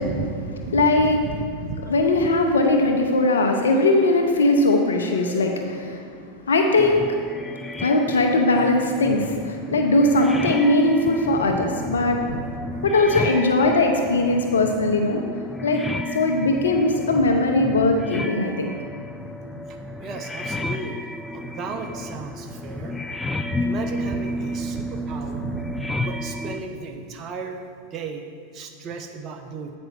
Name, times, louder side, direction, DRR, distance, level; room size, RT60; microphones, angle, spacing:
voice 1, 0.0-2.6 5.1-5.2 7.5-7.7 11.4-12.8 13.4-13.5 15.7-15.9 19.4-21.0 21.3-23.0 23.5-27.6 27.9-28.2 28.5-29.7, right 4 dB, 40° right, 5 dB, 0.8 m, -35 dB
voice 2, 0.7-1.2 1.9-6.1 6.5-7.2 7.8-12.4 12.8-15.2 15.6-15.8 16.1-18.7, left 2 dB, 90° left, 3 dB, 0.8 m, -20 dB
sound 1, 6.8-26.6, left 1 dB, 10° left, 0.5 m, -32 dB
8.9 x 5.3 x 6.0 m, 2.1 s
hypercardioid pair, 100°, 0 cm